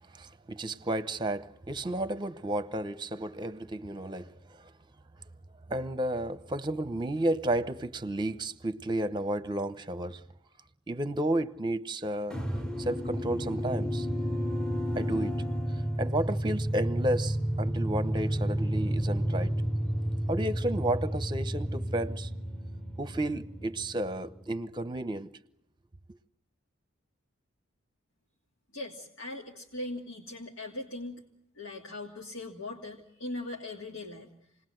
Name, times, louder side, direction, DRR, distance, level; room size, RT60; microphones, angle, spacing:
voice 1, 0.1-4.3 5.7-10.2 10.9-12.4 12.8-14.1 15.0-15.4 16.0-19.5 20.3-22.3 23.0-25.3, right 1 dB, 25° right, 0.9 m, -32 dB
sound 1, 12.3-24.5, equal, 5° left, 1.1 m, -31 dB
voice 2, 28.7-31.2 31.6-34.3, left 2 dB, 90° left, 2.8 m, -40 dB
28.5 x 20.0 x 7.8 m
head